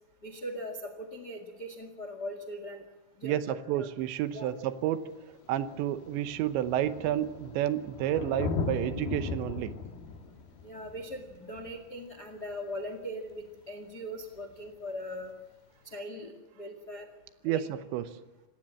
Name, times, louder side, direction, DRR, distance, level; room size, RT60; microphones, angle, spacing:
voice 1, 0.2-2.8 3.2-3.4 3.8-3.9 4.3-4.5 10.6-15.3 15.8-17.1 17.4-17.6, equal, 45° left, 7 dB, 1.2 m, -40 dB
voice 2, 3.2-5.1 5.5-9.8 17.4-18.2, right 12 dB, 80° right, 11 dB, 3.1 m, -30 dB
Thunder, 4.1-4.2 5.1-5.2 5.4-12.8 14.4-14.5, left 5 dB, 60° left, 3.0 m, -38 dB
25.5 x 18.0 x 7.5 m, 1.0 s
omnidirectional pair, 5.4 m